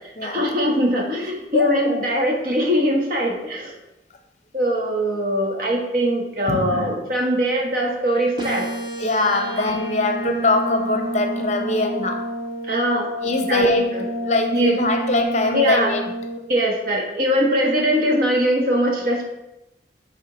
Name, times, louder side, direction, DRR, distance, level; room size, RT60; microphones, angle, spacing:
voice 1, 0.2-3.7 4.5-8.7 12.7-13.1 13.5-13.7 13.9-14.0 14.5-14.8 15.5-15.9 16.5-19.2, equal, 50° right, 0 dB, 1.3 m, -21 dB
sound 1, 8.4-16.4, equal, 25° right, 1.1 m, -29 dB
voice 2, 9.0-12.3 13.2-16.0, left 2 dB, 40° left, 5 dB, 0.7 m, -22 dB
7.2 x 3.4 x 5.0 m, 0.92 s
head